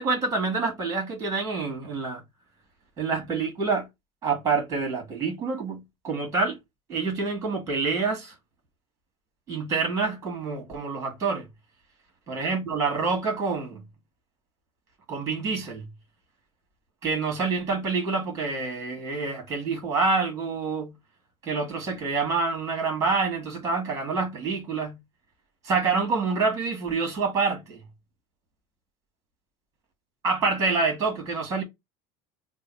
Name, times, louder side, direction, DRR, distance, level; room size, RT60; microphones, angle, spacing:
voice 1, 0.0-2.2 3.0-3.9 4.2-6.6 6.9-8.3 9.5-11.5 12.3-13.8 15.1-15.9 17.0-20.9 21.4-25.0 25.6-27.8 30.2-31.6, right 4 dB, 25° right, 2.0 m, -27 dB
3.6 x 2.3 x 4.1 m
cardioid pair, 150°, 13 cm